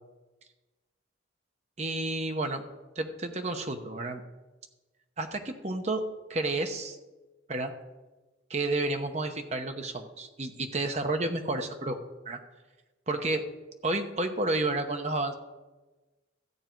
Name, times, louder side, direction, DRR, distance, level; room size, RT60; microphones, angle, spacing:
voice 1, 1.8-2.6 3.0-4.2 5.2-6.0 6.3-7.0 7.5-7.7 8.5-12.0 12.2-12.4 13.1-13.4 13.8-15.3, right 2 dB, 35° right, 6 dB, 0.9 m, -30 dB
13.5 x 8.1 x 4.5 m, 1.2 s
head